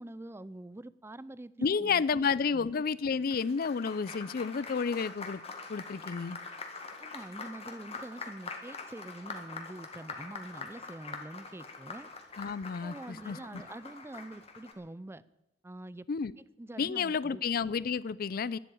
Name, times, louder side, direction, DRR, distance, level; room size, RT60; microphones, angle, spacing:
voice 1, 0.0-2.7 7.0-12.1 12.8-15.2 15.6-16.1 16.4-17.4, right 1 dB, 15° right, 0.4 m, -45 dB
voice 2, 1.6-5.4 5.7-6.4 12.4-13.6 16.1-16.3 16.8-18.6, left 5 dB, 55° left, 0.4 m, -31 dB
Applause, 3.0-14.7, left 4 dB, 35° left, 1.8 m, -44 dB
12.0 x 11.0 x 8.8 m
head